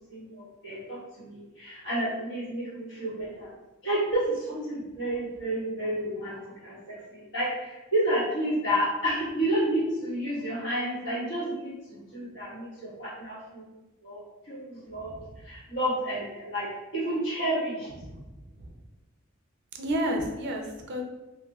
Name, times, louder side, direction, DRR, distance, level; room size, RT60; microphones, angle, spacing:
voice 1, 0.1-3.5 3.8-13.7 14.0-17.9, right 1 dB, 65° left, -9 dB, 1.4 m, -30 dB
voice 2, 18.0-18.7 19.8-21.0, equal, 55° right, 2 dB, 0.4 m, -32 dB
3.0 x 2.6 x 2.3 m, 1.0 s
head